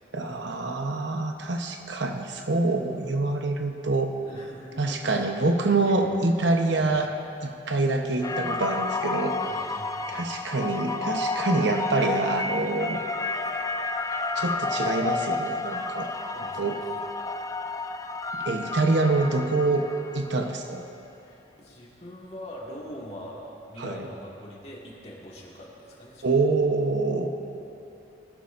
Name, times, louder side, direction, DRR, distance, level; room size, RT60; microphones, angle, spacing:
voice 1, 0.1-4.1 4.8-7.1 7.4-9.3 10.1-13.0 14.4-16.1 16.5-16.8 18.4-19.9 20.1-20.8 23.8-24.1 26.2-27.3, right 3 dB, 80° right, 4 dB, 1.0 m, -26 dB
voice 2, 4.3-5.2 5.9-6.1 6.8-6.9 9.3-10.3 16.3-17.0 18.8-18.9 21.2-26.4, equal, 35° left, -4 dB, 2.1 m, -43 dB
sound 1, 8.2-20.5, left 3 dB, 20° left, 0.3 m, -31 dB
20.5 x 12.5 x 2.6 m, 2.9 s
head